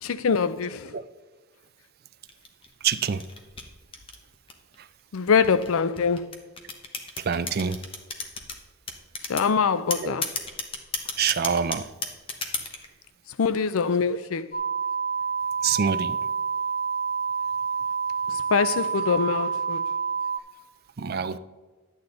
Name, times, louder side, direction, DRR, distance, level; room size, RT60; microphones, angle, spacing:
voice 1, 0.0-0.9 5.1-6.3 9.3-10.3 13.4-14.5 18.3-19.8, left 5 dB, 75° left, 0.5 m, -24 dB
sound 1, 2.3-4.8 5.4-8.6 8.9-9.5 9.9-12.9, left 4 dB, 25° left, 1.1 m, -32 dB
voice 2, 2.8-3.2 7.2-7.8 10.0-10.2 11.2-11.9 14.1-14.2 15.6-16.2 21.0-21.4, right 7 dB, 45° right, 0.4 m, -26 dB
sound 2, 14.5-20.4, right 6 dB, 45° left, 1.5 m, -28 dB
11.0 x 8.7 x 3.9 m
head